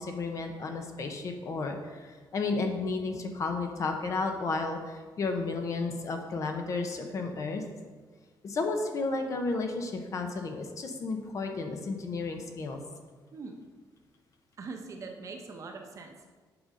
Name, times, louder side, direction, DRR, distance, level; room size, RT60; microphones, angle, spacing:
voice 1, 0.0-7.6 8.4-12.8, left 3 dB, 40° left, 4 dB, 0.8 m, -32 dB
voice 2, 14.6-16.3, right 4 dB, 45° right, 3 dB, 0.9 m, -42 dB
7.8 x 5.4 x 5.0 m, 1.4 s
wide cardioid pair, 165°, 8 cm